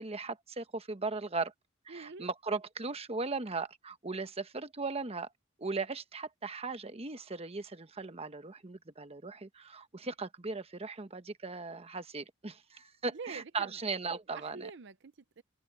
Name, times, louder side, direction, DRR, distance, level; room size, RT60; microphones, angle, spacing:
voice 1, 0.0-1.5 1.8-5.3 5.6-14.7, right 3 dB, 30° right, 1.1 m, -38 dB
voice 2, 1.9-2.3 13.1-13.7 14.5-15.4, right 4 dB, 60° right, 0.7 m, -45 dB
open air
head